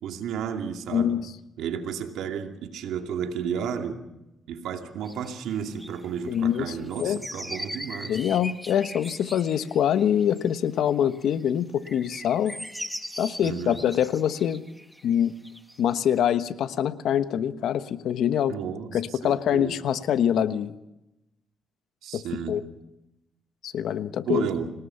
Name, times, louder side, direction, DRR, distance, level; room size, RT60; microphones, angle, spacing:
voice 1, 0.0-1.2 1.6-4.0 4.5-8.2 13.4-13.8 18.5-19.7 22.0-22.6 24.3-24.7, right 7 dB, 85° right, 5 dB, 2.5 m, -32 dB
voice 2, 0.9-1.3 6.3-7.2 8.1-12.6 13.2-14.6 15.0-15.3 15.8-18.6 18.9-20.7 22.1-22.2 22.5-22.6 23.6-24.4, left 9 dB, 75° left, 12 dB, 1.2 m, -24 dB
sound 1, 5.1-10.8 11.1-11.4 11.8-16.2, equal, ahead, 1.5 m, -40 dB
26.5 x 19.5 x 5.8 m, 0.92 s
cardioid pair, 90°, 0 cm